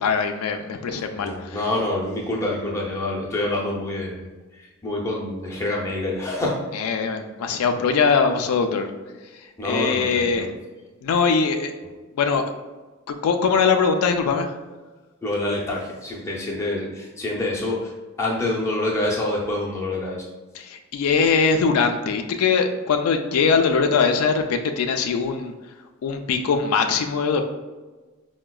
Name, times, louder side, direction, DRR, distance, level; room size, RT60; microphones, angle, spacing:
voice 1, 0.0-1.6 6.7-8.9 9.6-10.5 11.0-11.7 12.1-12.4 13.2-14.5 20.5-25.5 26.0-27.4, left 5 dB, 85° left, 5 dB, 0.3 m, -21 dB
voice 2, 0.9-4.3 4.6-6.6 9.6-10.5 15.2-17.9 18.2-20.2, left 2 dB, 15° left, -4 dB, 0.5 m, -27 dB
4.7 x 2.1 x 2.3 m, 1.2 s
head